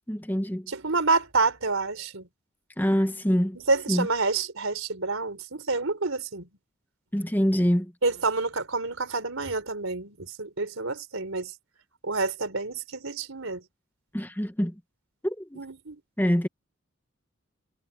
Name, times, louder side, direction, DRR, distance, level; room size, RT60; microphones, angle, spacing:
voice 1, 0.1-0.7 2.8-3.6 3.9-4.1 7.1-7.9 14.1-14.7 15.2-15.6 16.2-16.5, equal, 10° left, 1.2 m, -25 dB
voice 2, 0.7-2.3 3.6-6.5 8.0-11.5 12.0-13.6 15.6-16.0, right 3 dB, 85° right, 3.9 m, -28 dB
head